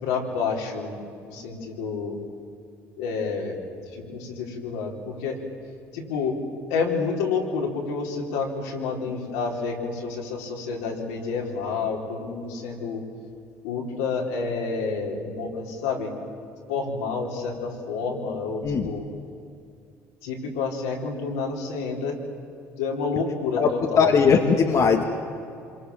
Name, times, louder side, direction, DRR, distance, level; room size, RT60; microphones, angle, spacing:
voice 1, 0.0-2.2 3.0-3.6 3.9-5.4 5.9-13.1 13.6-16.1 16.7-19.1 20.2-22.2 22.8-24.2, left 4 dB, 85° left, -1 dB, 4.4 m, -29 dB
voice 2, 24.0-25.0, left 6 dB, 50° left, 2 dB, 2.2 m, -19 dB
26.5 x 23.5 x 7.4 m, 2.5 s
hypercardioid pair, 70°, 7 cm